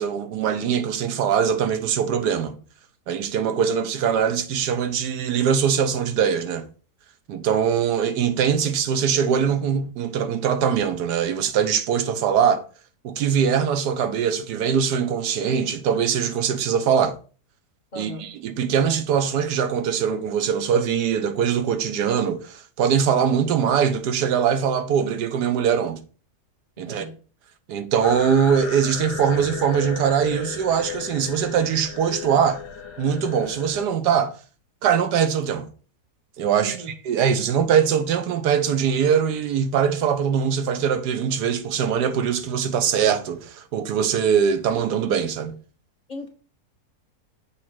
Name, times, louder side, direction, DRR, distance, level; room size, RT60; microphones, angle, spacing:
voice 1, 0.0-2.6 3.1-6.7 7.3-12.6 13.0-17.1 18.0-26.0 26.8-27.0 27.7-32.6 33.0-34.3 34.8-35.7 36.4-36.8 37.0-45.5, right 7 dB, 90° right, 1.4 m, -22 dB
voice 2, 17.9-18.3 26.8-27.2 36.6-36.9 46.1-46.3, right 1 dB, 30° left, 1.5 m, -37 dB
sound 1, 28.0-33.9, left 7 dB, 85° left, 1.6 m, -35 dB
7.2 x 3.2 x 6.0 m
omnidirectional pair, 1.7 m